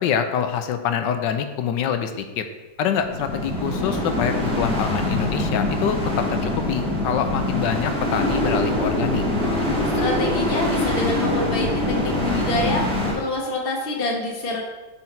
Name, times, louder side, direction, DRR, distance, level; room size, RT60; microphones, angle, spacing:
voice 1, 0.0-2.4 2.8-9.2, left 8 dB, 75° left, 8 dB, 1.4 m, -25 dB
sound 1, 3.0-13.1, left 1 dB, 5° left, 1.9 m, -24 dB
voice 2, 9.8-14.6, left 2 dB, 35° left, -1 dB, 1.4 m, -26 dB
9.4 x 4.4 x 4.4 m, 1.1 s
omnidirectional pair, 2.0 m